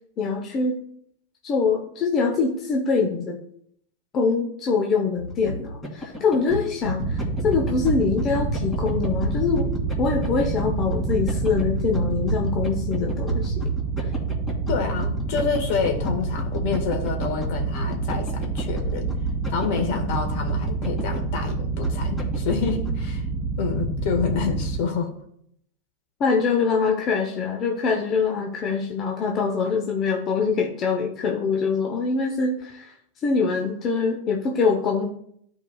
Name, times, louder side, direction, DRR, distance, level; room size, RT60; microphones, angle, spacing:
voice 1, 0.2-0.8 1.4-3.4 4.1-7.2 7.4-9.7 10.0-13.5 14.0-14.1 26.2-33.0 33.2-35.1, left 5 dB, 35° left, 2 dB, 1.0 m, -24 dB
sound 1, 5.2-22.9, equal, 15° left, 2.6 m, -32 dB
sound 2, 7.0-24.8, right 4 dB, ahead, 2.3 m, -28 dB
voice 2, 14.7-19.1 19.5-23.2 23.6-25.1, left 5 dB, 60° left, 4 dB, 1.7 m, -28 dB
12.5 x 4.9 x 2.4 m, 0.69 s
hypercardioid pair, 105°, 0 cm